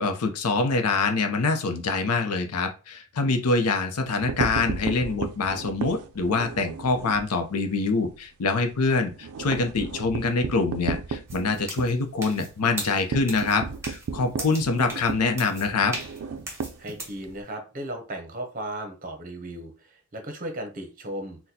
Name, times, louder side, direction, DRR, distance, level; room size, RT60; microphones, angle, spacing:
voice 1, 0.0-15.9, left 3 dB, 90° left, 6 dB, 0.6 m, -25 dB
sound 1, 4.0-7.3 7.6-7.8 8.1-8.2 8.5-17.4, right 5 dB, 75° right, 0.4 m, -34 dB
sound 2, 11.3-17.2, right 2 dB, 10° right, 0.9 m, -39 dB
voice 2, 16.8-21.4, right 1 dB, 35° right, 5 dB, 0.7 m, -36 dB
4.0 x 2.2 x 2.7 m, 0.34 s
head